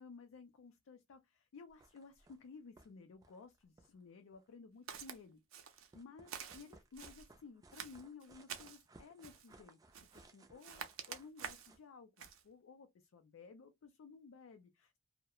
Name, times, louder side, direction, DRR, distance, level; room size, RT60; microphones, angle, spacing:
voice 1, 0.0-15.0, left 5 dB, 75° left, 0.4 m, -56 dB
sound 1, 1.7-2.5 2.8-2.9 3.1-4.5 5.7-11.8, right 2 dB, 15° right, 0.3 m, -63 dB
Walk footsteps, 4.9-5.2 5.5-5.9 6.3-7.3 7.7-8.8 9.2-9.5 9.9-10.3 10.6-11.7 12.2-12.4, right 8 dB, 75° right, 0.5 m, -48 dB
2.3 x 2.0 x 2.8 m
head